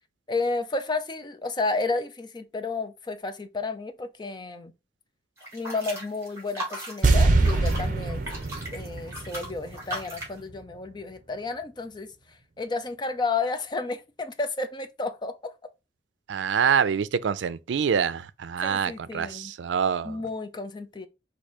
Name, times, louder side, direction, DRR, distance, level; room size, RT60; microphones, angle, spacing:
voice 1, 0.3-4.7 5.5-8.2 8.7-12.1 12.6-15.5 18.6-19.5 20.0-21.1, left 3 dB, 25° left, 0.5 m, -31 dB
sound 1, 5.4-10.4, right 1 dB, 15° right, 1.9 m, -38 dB
sound 2, 7.0-10.2 10.5-10.6, right 2 dB, 45° right, 0.7 m, -24 dB
voice 2, 16.3-20.2, right 7 dB, 90° right, 0.4 m, -26 dB
4.8 x 2.6 x 4.2 m
head